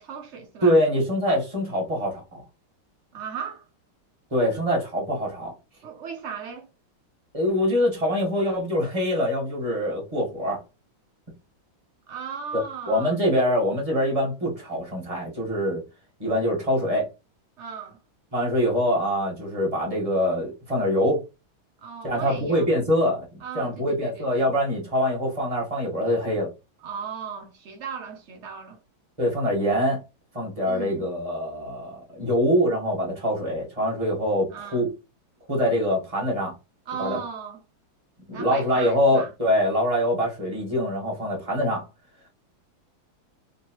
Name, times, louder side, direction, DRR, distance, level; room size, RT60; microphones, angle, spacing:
voice 1, 0.0-0.8 3.1-3.7 5.8-6.7 12.1-13.1 17.6-18.0 21.8-22.7 23.4-24.5 26.8-28.8 30.7-31.1 34.5-34.9 36.9-37.6 38.3-39.3, right 7 dB, 90° right, 0.6 m, -36 dB
voice 2, 0.6-2.4 4.3-5.5 7.3-10.6 12.5-12.6 12.9-15.8 16.2-17.1 18.3-21.2 22.0-26.5 29.2-30.0 30.3-34.5 34.7-34.9 35.5-36.5 37.0-37.2 38.3-41.8, equal, 20° right, 1.4 m, -24 dB
3.8 x 3.0 x 3.0 m
omnidirectional pair, 2.2 m